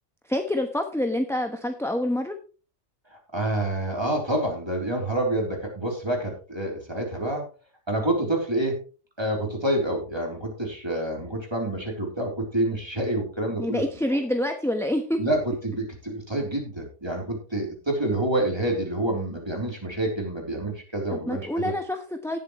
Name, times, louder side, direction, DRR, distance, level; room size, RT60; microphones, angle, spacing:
voice 1, 0.2-2.4 13.6-15.2 21.1-22.4, left 1 dB, ahead, 5 dB, 1.0 m, -27 dB
voice 2, 3.1-7.5 7.9-8.8 9.2-13.8 15.2-21.7, right 1 dB, 20° right, 0 dB, 3.6 m, -27 dB
18.0 x 7.7 x 3.1 m, 0.35 s
omnidirectional pair, 1.2 m